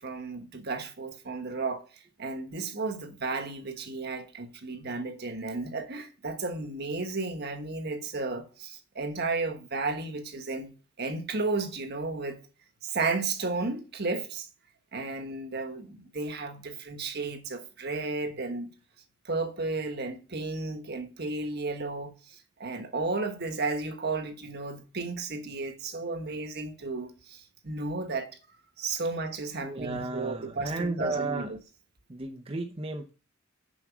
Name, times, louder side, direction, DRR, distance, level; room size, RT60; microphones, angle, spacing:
voice 1, 0.0-1.9 2.2-10.7 11.0-12.4 12.8-14.5 14.9-18.7 19.2-22.3 22.6-28.3 28.8-31.6, right 3 dB, 50° right, 1.4 m, -33 dB
voice 2, 29.6-31.6 32.1-33.1, right 3 dB, 30° right, 0.8 m, -33 dB
7.3 x 6.3 x 7.3 m
head